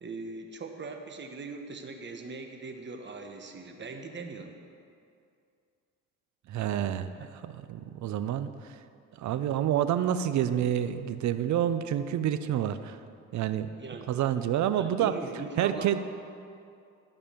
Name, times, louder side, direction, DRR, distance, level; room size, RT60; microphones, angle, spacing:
voice 1, 0.0-4.5 13.7-14.1 14.7-15.9, right 3 dB, 35° right, 4 dB, 1.2 m, -40 dB
voice 2, 6.5-7.1 7.4-8.5 9.2-13.0 13.3-13.7 14.1-15.1 15.6-16.0, right 10 dB, 70° right, 11 dB, 0.6 m, -28 dB
13.0 x 5.4 x 6.8 m, 2.4 s
cardioid pair, 90°, 30 cm